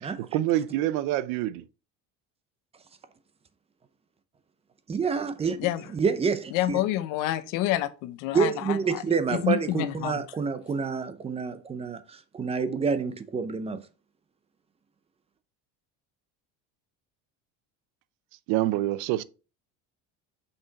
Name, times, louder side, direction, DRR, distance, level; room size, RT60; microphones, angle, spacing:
voice 1, 0.0-1.6 18.5-19.2, right 14 dB, 70° right, 0.6 m, -26 dB
voice 2, 4.9-5.6 5.9-6.8 8.3-13.8, right 5 dB, 20° right, 0.6 m, -28 dB
voice 3, 6.5-8.5 9.4-10.1, left 14 dB, 75° left, 0.8 m, -27 dB
5.9 x 5.4 x 4.1 m
cardioid pair, 150°, 33 cm